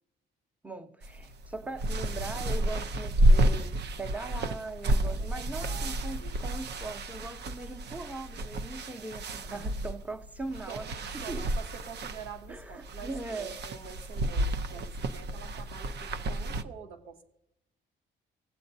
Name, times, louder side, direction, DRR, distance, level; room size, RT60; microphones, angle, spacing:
voice 1, 0.6-10.9 11.1-11.4 12.5-13.6, right 2 dB, 10° right, 0.8 m, -40 dB
sound 1, 1.0-16.6, right 1 dB, 60° right, 0.7 m, -30 dB
voice 2, 4.8-6.4 9.5-9.7 10.7-17.2, right 6 dB, 90° right, 1.3 m, -47 dB
18.0 x 7.6 x 2.7 m
cardioid pair, 90°, 20 cm